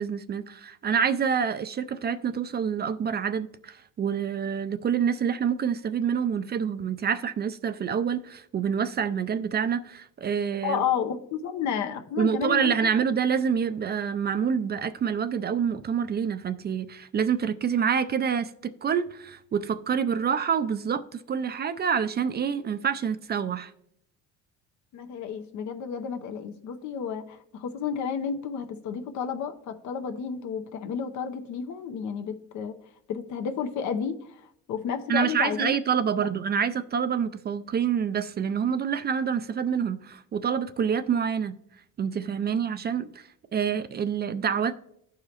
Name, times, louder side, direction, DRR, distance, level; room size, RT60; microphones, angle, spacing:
voice 1, 0.0-10.8 12.2-23.7 35.1-41.6 42.0-44.8, right 7 dB, 35° right, 0.4 m, -27 dB
voice 2, 10.6-12.9 24.9-32.8 33.1-35.8 36.2-36.3, left 7 dB, 70° left, 0.8 m, -31 dB
14.0 x 4.8 x 2.9 m
supercardioid pair, 85°, 30 cm